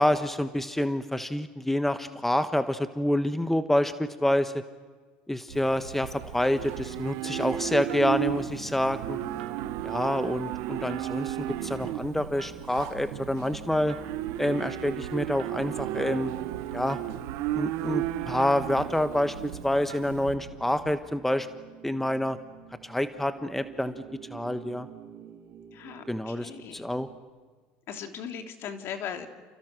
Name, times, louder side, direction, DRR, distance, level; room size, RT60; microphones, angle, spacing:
voice 1, 0.0-4.5 5.3-9.2 9.8-11.4 11.6-14.0 14.4-16.3 16.7-17.0 17.5-21.5 21.8-22.4 22.8-24.0 24.3-24.9 26.1-27.1, left 1 dB, 5° left, 10 dB, 1.3 m, -27 dB
Livestock farm animals working animals, 5.5-20.3, right 14 dB, 65° right, 1.4 m, -34 dB
sound 1, 5.5-20.9, right 8 dB, 90° right, 1.3 m, -45 dB
sound 2, 7.5-27.2, right 8 dB, 45° right, 3.4 m, -48 dB
voice 2, 25.7-26.8 27.9-29.3, left 8 dB, 55° left, 6 dB, 3.1 m, -38 dB
30.0 x 29.5 x 6.2 m, 1.4 s
hypercardioid pair, 85°, 5 cm